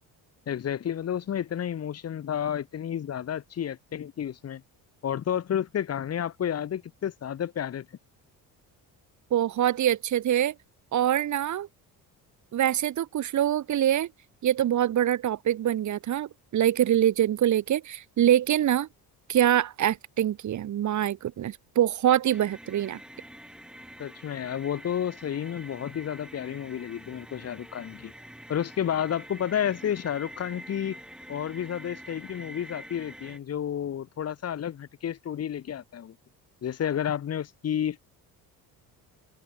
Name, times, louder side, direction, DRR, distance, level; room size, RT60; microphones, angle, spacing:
voice 1, 0.5-4.6 5.0-7.9 24.0-28.1 28.5-31.0 31.3-36.1 36.6-38.0, left 9 dB, 40° left, 4.5 m, -31 dB
voice 2, 9.3-10.5 10.9-11.7 12.5-14.1 14.4-18.9 19.3-23.0, right 11 dB, 50° right, 5.5 m, -24 dB
sound 1, 22.3-33.4, equal, ahead, 7.7 m, -46 dB
open air
cardioid pair, 160°, 37 cm